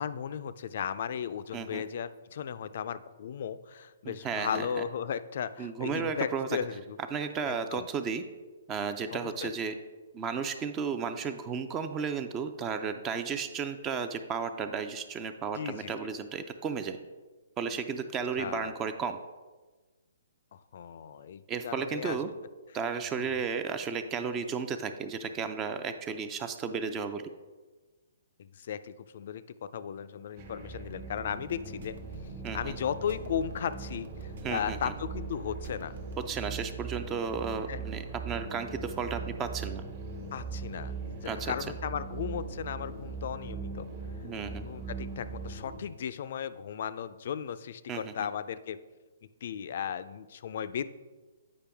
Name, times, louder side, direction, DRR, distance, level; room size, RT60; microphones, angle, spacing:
voice 1, 0.0-7.0 7.4-7.9 9.1-9.5 15.5-15.9 18.4-18.7 20.5-22.2 23.2-23.5 28.4-32.0 32.5-36.0 37.7-37.8 40.3-43.9 44.6-48.8 49.4-50.9, left 8 dB, 55° left, 13 dB, 0.4 m, -36 dB
voice 2, 4.0-4.7 5.6-6.6 7.1-8.2 8.7-9.8 10.1-17.0 17.6-19.2 21.5-22.3 22.7-27.3 32.4-32.8 34.4-34.9 36.2-39.8 41.2-41.5 44.2-44.7 47.9-48.3, right 6 dB, 20° right, 9 dB, 0.4 m, -34 dB
sound 1, 30.4-45.8, right 4 dB, 40° right, 1.2 m, -40 dB
sound 2, 31.2-36.3, right 4 dB, 65° right, 0.9 m, -49 dB
8.4 x 5.1 x 3.5 m, 1.3 s
hypercardioid pair, 150°, 0 cm